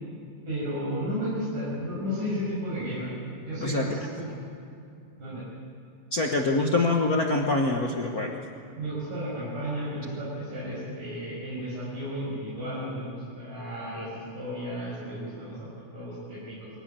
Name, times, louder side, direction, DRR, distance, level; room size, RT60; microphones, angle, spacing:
voice 1, 0.4-3.1 3.4-4.3 5.2-5.4 8.8-15.7 15.9-16.7, equal, 75° right, -8 dB, 7.8 m, -33 dB
voice 2, 3.6-4.0 6.1-8.4, left 2 dB, 85° left, 1 dB, 0.8 m, -25 dB
23.5 x 17.0 x 8.9 m, 2.7 s
omnidirectional pair, 3.7 m